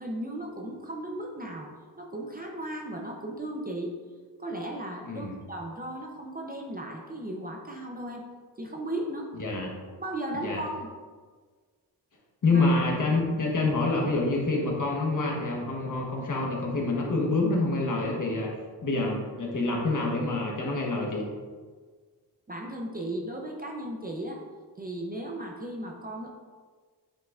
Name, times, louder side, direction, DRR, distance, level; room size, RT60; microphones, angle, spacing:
voice 1, 0.0-1.7 2.0-4.0 4.4-8.2 8.6-9.3 9.9-10.9 12.5-12.6 22.5-24.4 24.8-26.3, right 1 dB, 20° right, 0 dB, 0.6 m, -36 dB
voice 2, 5.0-5.4 9.4-9.7 10.3-10.6 12.4-18.5 18.8-21.3, left 2 dB, 50° left, -1 dB, 1.2 m, -27 dB
8.9 x 5.6 x 2.5 m, 1.5 s
wide cardioid pair, 170°, 40 cm